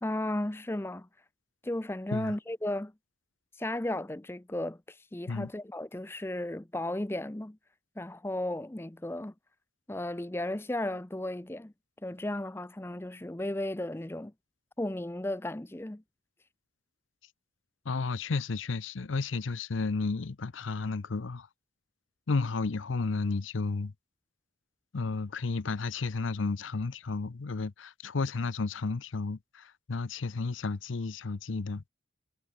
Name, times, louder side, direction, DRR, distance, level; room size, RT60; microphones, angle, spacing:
voice 1, 0.0-1.1 1.6-2.9 3.6-7.6 8.0-9.3 9.9-11.7 12.0-14.3 14.8-16.0, left 1 dB, 10° left, 0.5 m, -34 dB
voice 2, 17.9-21.5 22.3-23.9 24.9-31.8, left 4 dB, 80° left, 0.7 m, -32 dB
head